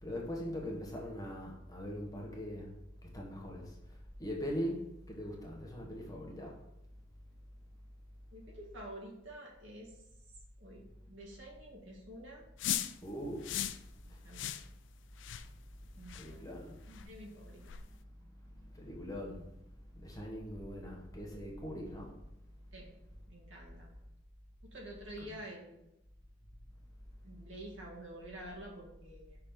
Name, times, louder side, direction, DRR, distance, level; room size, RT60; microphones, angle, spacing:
voice 1, 0.0-2.7 3.1-3.7 4.2-6.5 13.0-13.5 16.1-16.8 18.7-19.5 19.9-22.1, equal, 20° left, -2 dB, 1.3 m, -41 dB
voice 2, 8.3-9.9 10.6-12.4 14.0-14.5 16.0-16.6 16.9-17.7 22.7-22.9 23.3-23.9 24.6-25.9 27.2-29.4, right 1 dB, 75° right, -2 dB, 1.9 m, -49 dB
sound 1, 12.6-13.0 13.4-13.8 14.3-14.7 15.2-15.5 16.1-16.3 16.9-17.1 17.7-17.8, left 11 dB, 70° left, 0.4 m, -37 dB
5.8 x 4.1 x 5.3 m, 0.84 s
head